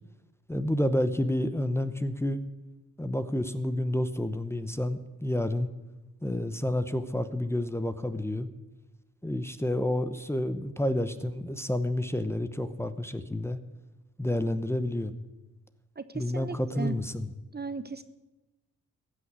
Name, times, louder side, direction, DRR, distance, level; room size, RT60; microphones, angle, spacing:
voice 1, 0.5-2.4 3.0-5.7 6.2-8.5 9.2-13.6 14.2-15.2 16.1-17.3, left 1 dB, 10° left, 9 dB, 0.8 m, -29 dB
voice 2, 16.0-16.9 17.5-18.0, right 4 dB, 30° right, 12 dB, 0.8 m, -36 dB
15.5 x 6.1 x 9.4 m, 1.0 s
cardioid pair, 75°, 33 cm